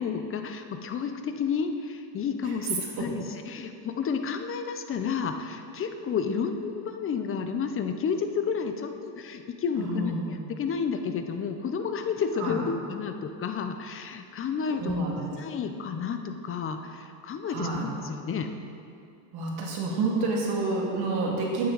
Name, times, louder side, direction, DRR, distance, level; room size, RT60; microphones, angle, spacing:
voice 1, 0.0-15.0 15.3-18.5, left 6 dB, 30° left, 7 dB, 0.6 m, -31 dB
voice 2, 9.8-10.3 12.4-12.6 14.8-15.2 17.4-17.8 19.3-21.7, right 3 dB, 55° right, -2 dB, 2.2 m, -28 dB
9.4 x 8.7 x 4.0 m, 2.4 s
cardioid pair, 125°, 45 cm